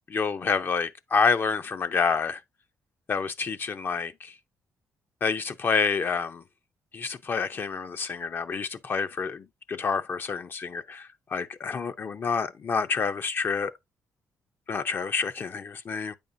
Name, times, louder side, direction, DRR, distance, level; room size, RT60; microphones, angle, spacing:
voice 1, 0.1-2.4 3.1-4.3 5.2-6.4 6.9-13.7 14.7-16.1, left 5 dB, 40° left, 0.5 m, -28 dB
8.6 x 5.2 x 2.6 m
cardioid pair, 125°, 6 cm